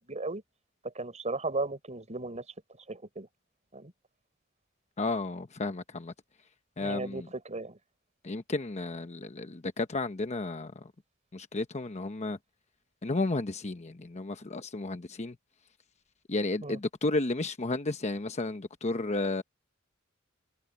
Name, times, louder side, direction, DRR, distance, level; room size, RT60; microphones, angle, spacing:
voice 1, 0.1-0.4 0.9-2.4 2.9-3.3 3.7-3.9 6.8-7.8 16.6-16.8, right 2 dB, 35° right, 5.6 m, -35 dB
voice 2, 5.0-6.1 6.8-7.3 8.2-10.7 11.3-12.4 13.0-15.4 16.3-19.4, left 2 dB, 30° left, 0.9 m, -32 dB
head